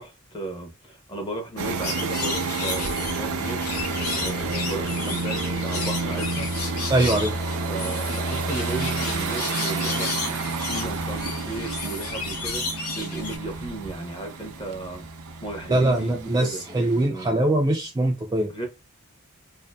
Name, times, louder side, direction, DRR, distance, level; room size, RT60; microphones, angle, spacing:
voice 1, 0.0-3.6 4.2-6.5 7.7-12.6 13.0-15.0 15.4-16.1 16.4-16.8 17.1-17.3 18.5-18.7, right 2 dB, 25° left, 0.7 m, -35 dB
sound 1, 1.6-17.1, right 3 dB, 85° right, 0.5 m, -30 dB
sound 2, 1.8-13.4, left 4 dB, 85° left, 0.8 m, -33 dB
voice 2, 6.9-7.3 15.7-18.5, right 1 dB, 20° right, 0.3 m, -22 dB
2.6 x 2.5 x 2.2 m
head